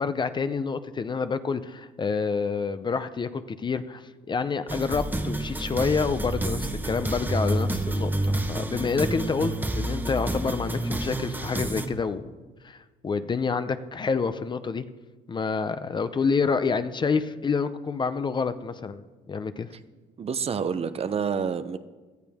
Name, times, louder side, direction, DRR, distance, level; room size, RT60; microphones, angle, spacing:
voice 1, 0.0-12.2 12.6-14.8 15.3-19.7, left 5 dB, 25° left, 11 dB, 0.6 m, -28 dB
sound 1, 4.7-11.9, right 1 dB, 10° right, 1.1 m, -29 dB
voice 2, 20.2-21.8, right 6 dB, 35° right, 12 dB, 0.7 m, -28 dB
17.5 x 13.5 x 3.6 m, 1.3 s
cardioid pair, 110°, 17 cm